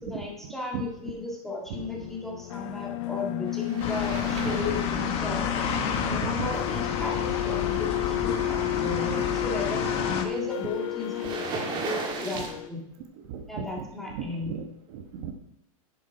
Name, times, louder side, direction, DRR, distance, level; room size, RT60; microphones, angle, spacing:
voice 1, 0.0-5.5 6.1-12.9 13.5-14.6, left 2 dB, ahead, -2 dB, 2.1 m, -35 dB
sound 1, 1.7-12.7, left 21 dB, 55° left, 0.5 m, -33 dB
sound 2, 3.5-12.5, right 4 dB, 25° right, 1.7 m, -40 dB
sound 3, 3.8-10.2, left 6 dB, 35° left, 1.3 m, -30 dB
voice 2, 4.3-4.8 5.8-6.5 9.1-9.2 12.4-12.5 13.3-15.3, right 7 dB, 50° right, 4 dB, 1.3 m, -37 dB
11.0 x 7.4 x 4.9 m, 0.79 s
supercardioid pair, 150°, 18 cm